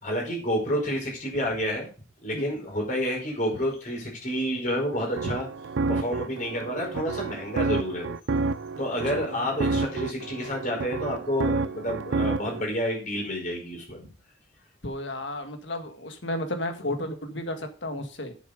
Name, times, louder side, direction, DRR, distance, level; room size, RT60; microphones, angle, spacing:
voice 1, 0.0-1.9 2.2-5.5 5.9-8.1 8.8-14.1, equal, 40° left, -1 dB, 5.1 m, -29 dB
sound 1, 4.9-12.6, right 3 dB, 80° right, 0.5 m, -30 dB
voice 2, 9.1-9.4 14.8-18.4, left 1 dB, 70° left, 6 dB, 1.8 m, -33 dB
8.4 x 7.5 x 5.2 m, 0.37 s
head